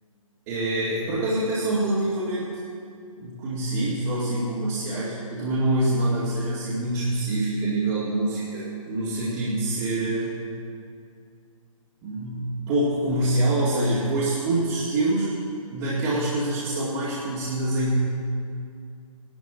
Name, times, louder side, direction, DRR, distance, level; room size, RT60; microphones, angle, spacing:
voice 1, 0.5-2.6 3.2-10.3 12.0-15.4 15.7-18.0, right 1 dB, 35° right, -9 dB, 2.3 m, -25 dB
16.0 x 12.0 x 3.7 m, 2.3 s
figure-of-eight pair, 135°, 18 cm